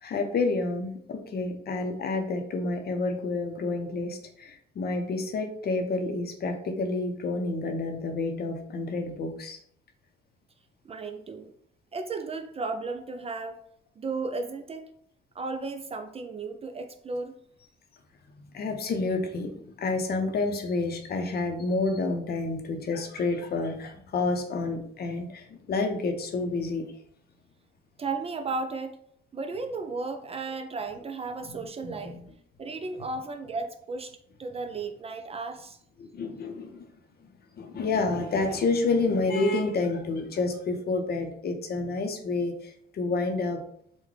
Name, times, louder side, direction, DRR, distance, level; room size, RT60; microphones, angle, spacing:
voice 1, 0.0-9.6 18.5-26.8 31.8-32.3 36.0-36.9 37.6-43.6, left 3 dB, 50° left, 5 dB, 0.6 m, -29 dB
voice 2, 10.8-11.5 11.9-13.6 14.0-14.9 15.4-17.3 28.0-29.0 29.3-32.2 32.6-34.1 34.4-35.8, right 3 dB, 30° right, 7 dB, 0.3 m, -34 dB
3.7 x 2.2 x 3.2 m, 0.67 s
cardioid pair, 90°, 20 cm